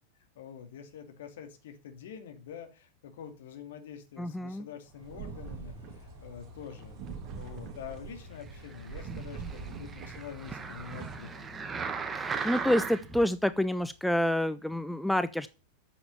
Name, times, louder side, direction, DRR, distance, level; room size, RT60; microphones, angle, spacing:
voice 1, 0.4-7.0 7.4-11.5, left 8 dB, 55° left, 7 dB, 2.5 m, -46 dB
voice 2, 4.2-4.7 12.1-15.5, left 1 dB, ahead, 13 dB, 0.5 m, -28 dB
sound 1, 4.9-14.5, left 9 dB, 75° left, 1.8 m, -55 dB
sound 2, 4.9-11.2, right 5 dB, 30° right, 2.4 m, -44 dB
sound 3, 8.7-13.2 13.8-13.9, right 5 dB, 15° right, 1.4 m, -37 dB
8.8 x 7.1 x 7.1 m, 0.32 s
figure-of-eight pair, 90°, 0 cm